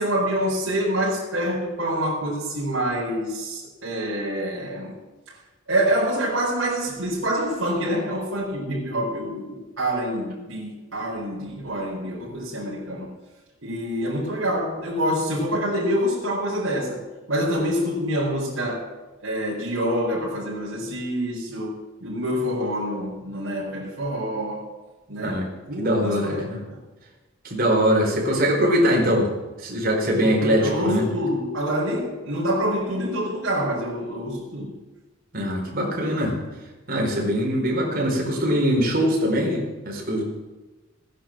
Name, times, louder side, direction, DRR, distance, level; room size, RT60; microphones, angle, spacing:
voice 1, 0.0-5.0 5.7-13.1 13.6-18.9 19.2-24.7 25.1-26.8 30.2-34.7, equal, 65° right, -6 dB, 4.6 m, -26 dB
voice 2, 25.8-26.6 27.4-29.3 29.6-31.0 35.3-36.4 36.9-40.2, equal, 45° right, 0 dB, 4.5 m, -22 dB
17.0 x 10.0 x 7.5 m, 1.2 s
head